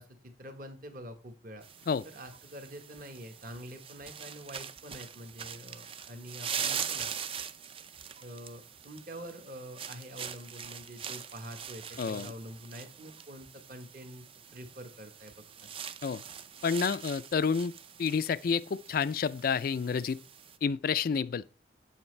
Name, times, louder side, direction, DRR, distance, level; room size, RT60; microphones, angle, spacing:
voice 1, 0.0-1.7 2.0-7.1 8.2-14.3 14.5-15.3 15.6-15.7, equal, 45° right, 1.1 m, -46 dB
sound 1, 1.6-20.6, right 8 dB, 30° right, 0.4 m, -42 dB
voice 2, 12.0-12.3 16.0-16.2 16.6-17.7 18.0-20.2 20.6-21.4, left 6 dB, 50° left, 0.3 m, -29 dB
8.0 x 7.1 x 3.2 m
head